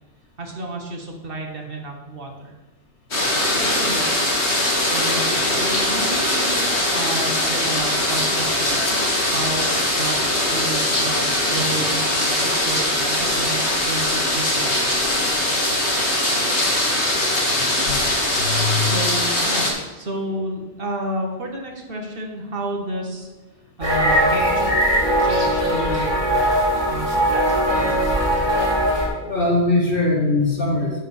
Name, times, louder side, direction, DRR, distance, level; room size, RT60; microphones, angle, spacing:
voice 1, 0.4-2.5 3.5-4.2 4.9-8.8 9.3-14.9 18.8-19.7 19.9-23.3 23.8-24.8 25.2-26.4 26.9-27.5 27.7-28.0, right 2 dB, 55° right, 2 dB, 1.3 m, -31 dB
sound 1, 3.1-19.7, left 1 dB, 75° left, 2.0 m, -21 dB
voice 2, 17.5-18.0 18.2-19.1 20.3-20.4 29.2-31.0, left 2 dB, 55° left, -2 dB, 1.9 m, -22 dB
sound 2, 23.8-29.1, equal, 20° right, 2.1 m, -20 dB
6.2 x 5.4 x 6.9 m, 1.2 s
omnidirectional pair, 1.2 m